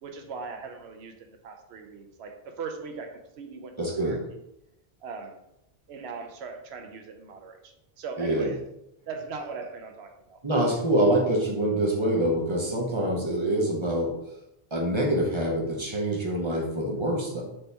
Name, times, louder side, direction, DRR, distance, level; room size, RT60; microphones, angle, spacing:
voice 1, 0.0-4.4 5.0-5.4 5.9-8.6 9.1-10.4, right 4 dB, 90° right, 5 dB, 0.9 m, -39 dB
voice 2, 3.8-4.2 8.2-8.5 10.4-14.1 14.7-17.4, right 1 dB, 35° right, -1 dB, 0.7 m, -25 dB
4.3 x 2.7 x 3.3 m, 0.84 s
omnidirectional pair, 1.1 m